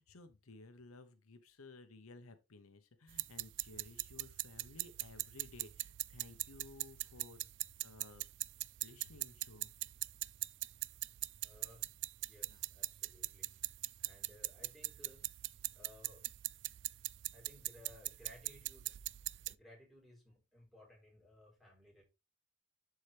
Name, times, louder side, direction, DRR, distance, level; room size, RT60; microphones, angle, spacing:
voice 1, 0.0-7.5 7.8-8.3 8.8-9.7 12.5-12.6, left 3 dB, 85° left, 0.9 m, -56 dB
sound 1, 3.1-19.5, right 18 dB, 60° right, 0.3 m, -42 dB
voice 2, 11.4-11.9 12.3-13.6 14.0-15.2 15.7-16.2 17.3-18.9 19.5-22.0, left 1 dB, ahead, 3.9 m, -60 dB
11.0 x 4.6 x 3.3 m
head